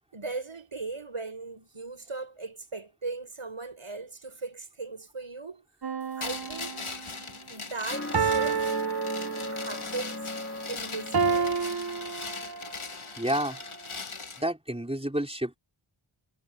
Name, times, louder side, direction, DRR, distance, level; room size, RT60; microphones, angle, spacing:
voice 1, 0.1-5.7 6.2-6.9 7.5-8.7 9.5-10.3 10.7-11.6, right 3 dB, 85° right, 5.8 m, -38 dB
sound 1, 5.8-7.1 8.1-9.8 11.1-12.9 13.5-13.6, right 6 dB, 50° right, 0.8 m, -30 dB
sound 2, 6.2-14.4, left 4 dB, 80° left, 2.1 m, -40 dB
sound 3, 7.9-12.3, left 2 dB, 25° left, 3.2 m, -37 dB
voice 2, 13.2-13.6 14.4-15.6, right 1 dB, 10° right, 3.8 m, -29 dB
wide cardioid pair, 45°, 49 cm